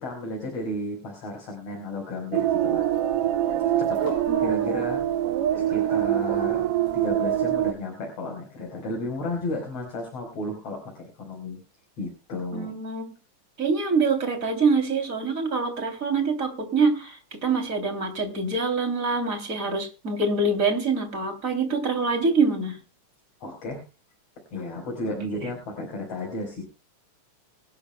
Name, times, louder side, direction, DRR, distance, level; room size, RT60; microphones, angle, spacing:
voice 1, 0.0-2.9 3.8-5.0 5.6-6.7 6.9-11.6 12.0-12.7 23.4-23.8 24.5-26.6, left 1 dB, 50° left, 1 dB, 5.3 m, -33 dB
sound 1, 2.3-7.7, right 11 dB, 70° right, 1.4 m, -24 dB
voice 2, 4.3-4.8 12.5-13.1 13.6-22.8 25.4-25.5, right 4 dB, 25° right, 6 dB, 3.3 m, -25 dB
24.5 x 13.0 x 2.2 m, 0.30 s
omnidirectional pair, 3.6 m